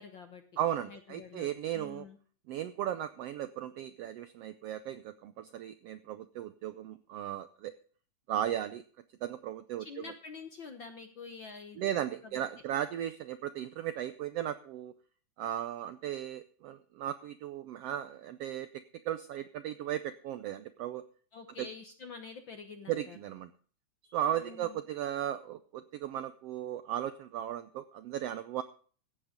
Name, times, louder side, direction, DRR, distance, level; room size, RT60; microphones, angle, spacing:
voice 1, 0.0-0.4 0.9-2.2 9.8-11.9 21.3-23.2 24.2-24.8, left 5 dB, 60° left, 7 dB, 1.3 m, -47 dB
voice 2, 0.6-2.1 2.5-7.7 8.3-8.8 9.2-10.0 11.8-14.9 15.4-21.0 21.6-21.7 22.9-23.5 24.1-28.6, right 11 dB, 80° right, 12 dB, 1.4 m, -36 dB
15.0 x 8.7 x 5.0 m, 0.43 s
omnidirectional pair, 3.5 m